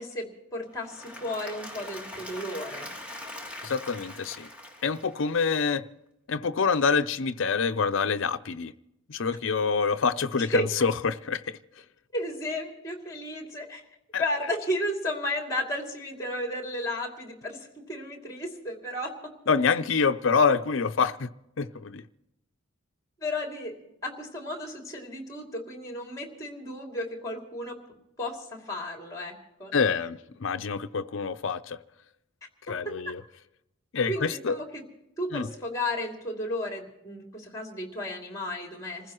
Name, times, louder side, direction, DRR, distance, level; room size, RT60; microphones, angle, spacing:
voice 1, 0.0-2.9 10.4-10.7 12.1-13.8 14.2-19.1 23.2-23.8 24.0-27.8 28.2-29.3 29.6-29.7 34.1-34.8 35.2-39.1, left 1 dB, 15° left, 2.7 m, -33 dB
Applause / Crowd, 0.7-5.7, left 1 dB, 5° right, 1.8 m, -42 dB
voice 2, 3.6-4.5 4.8-5.8 6.3-8.7 9.1-11.6 14.1-14.2 19.5-21.3 21.6-22.0 29.7-31.8 32.7-33.2 33.9-34.6 35.3-35.5, left 5 dB, 65° left, 0.5 m, -26 dB
27.0 x 15.5 x 3.0 m
head